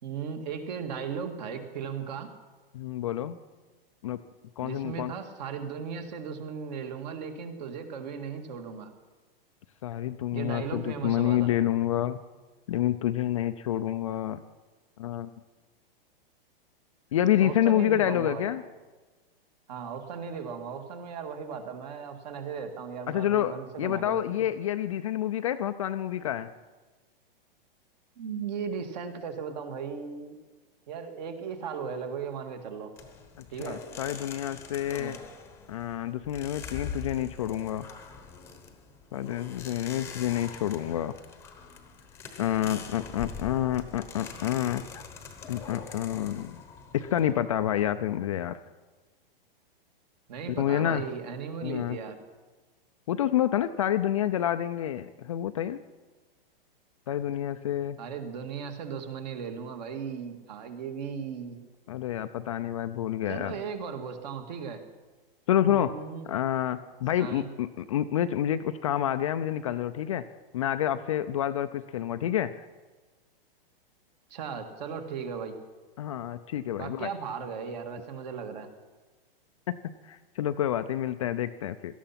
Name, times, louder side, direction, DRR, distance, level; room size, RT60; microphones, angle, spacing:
voice 1, 0.0-2.3 4.6-8.9 10.3-11.5 17.4-18.5 19.7-24.5 28.2-30.4 30.9-32.9 33.5-33.8 35.0-35.2 50.3-52.2 58.0-61.6 63.3-64.8 65.6-66.3 67.2-67.5 74.3-75.6 76.8-78.7, right 6 dB, 45° right, 6 dB, 2.0 m, -37 dB
voice 2, 2.7-3.4 4.0-4.2 4.6-5.1 9.8-12.2 12.7-14.4 15.0-15.3 17.1-18.6 23.1-26.5 33.4-35.2 35.7-37.9 39.1-41.1 42.4-45.0 45.5-46.6 46.9-48.6 50.6-51.0 51.6-52.0 53.1-55.8 57.1-58.0 61.9-63.6 65.5-65.9 66.3-70.3 70.5-72.5 76.0-77.1 79.7-81.9, left 11 dB, 35° left, 10 dB, 0.4 m, -28 dB
sound 1, 33.0-48.0, left 6 dB, 10° left, 1.0 m, -44 dB
17.5 x 13.5 x 5.8 m, 1.3 s
hypercardioid pair, 165°, 29 cm